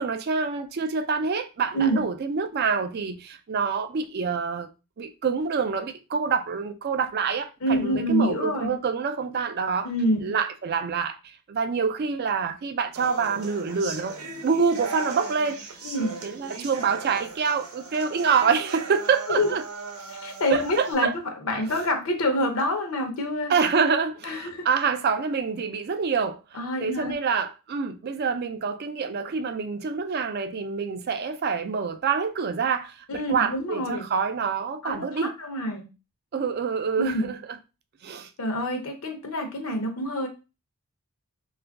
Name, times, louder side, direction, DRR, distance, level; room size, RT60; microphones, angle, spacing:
voice 1, 0.0-4.7 5.0-9.9 10.2-11.2 11.5-14.2 14.4-15.7 16.2-19.6 20.5-21.1 23.5-35.3 36.3-37.6 38.0-38.3, right 5 dB, 45° right, 0.4 m, -26 dB
voice 2, 7.6-8.8 9.8-10.3 15.8-16.2 19.4-19.5 20.1-23.5 24.2-24.7 26.5-27.1 33.1-34.1 34.8-35.9 37.0-37.3 38.4-40.3, equal, 70° left, 0.7 m, -27 dB
sound 1, 12.9-20.9, right 3 dB, 80° right, 0.7 m, -38 dB
2.9 x 2.4 x 3.4 m
head